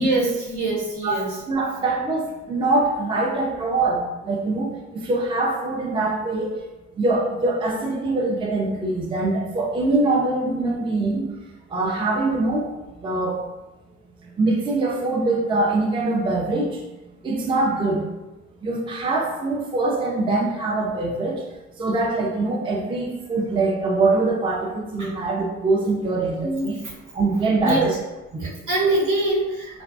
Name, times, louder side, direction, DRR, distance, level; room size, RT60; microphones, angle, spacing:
voice 1, 0.0-1.4 25.0-25.1 26.4-26.9 27.6-28.0 28.4-29.8, right 2 dB, 80° right, -6 dB, 1.0 m, -24 dB
voice 2, 1.0-6.5 7.0-11.3 11.7-12.7 13.0-13.4 14.4-16.8 17.2-18.0 18.6-21.4 21.8-26.8 27.1-27.9 28.3-28.4, right 2 dB, 15° right, -1 dB, 0.4 m, -23 dB
2.5 x 2.1 x 2.5 m, 1.0 s
cardioid pair, 90°, 30 cm